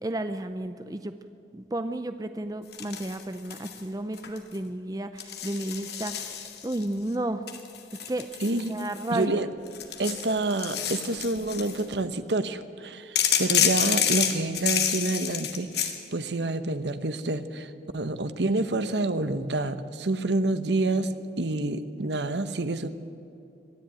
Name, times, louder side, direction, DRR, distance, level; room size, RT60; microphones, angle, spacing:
voice 1, 0.0-1.1 1.5-6.3 6.6-7.4 8.1-8.3 8.7-9.4, right 1 dB, 20° right, 9 dB, 0.5 m, -32 dB
sound 1, 2.7-3.8 4.1-4.6 5.2-6.8 7.5-9.2 9.7-11.8 13.2-16.0, left 9 dB, 70° left, 2.0 m, -28 dB
voice 2, 8.4-8.7 9.1-9.5 10.0-22.9, right 2 dB, 80° right, 11 dB, 1.1 m, -28 dB
22.0 x 13.5 x 8.9 m, 2.7 s
head